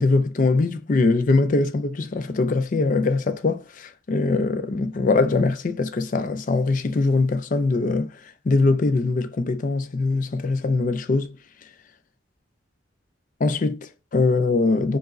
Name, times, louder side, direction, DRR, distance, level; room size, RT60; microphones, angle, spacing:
voice 1, 0.0-11.3 13.4-15.0, left 3 dB, 40° left, 0.4 m, -22 dB
4.8 x 2.0 x 3.6 m
head